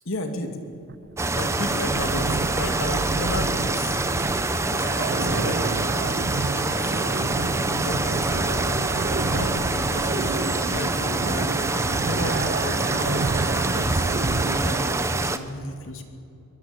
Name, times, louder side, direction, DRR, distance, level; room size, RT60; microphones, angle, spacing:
voice 1, 0.0-0.6 1.4-4.0 4.5-8.8 9.2-13.2 13.7-16.0, left 1 dB, 65° left, 5 dB, 2.7 m, -33 dB
sound 1, 0.7-14.9, right 4 dB, 45° right, 0.5 m, -30 dB
sound 2, 1.2-15.4, right 2 dB, 15° right, 0.9 m, -25 dB
23.5 x 20.0 x 9.1 m, 2.7 s
head